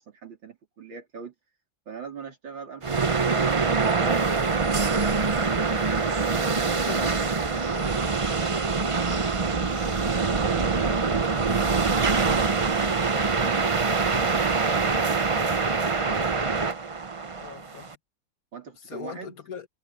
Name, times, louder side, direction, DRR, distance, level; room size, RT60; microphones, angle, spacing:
voice 1, 0.0-1.3 1.9-4.3 8.6-13.7 18.5-19.4, right 6 dB, 85° right, 4.3 m, -42 dB
sound 1, 2.8-17.9, right 4 dB, 55° right, 0.3 m, -24 dB
voice 2, 6.4-7.5 17.4-18.0 18.9-19.7, left 7 dB, 50° left, 1.8 m, -40 dB
omnidirectional pair, 2.0 m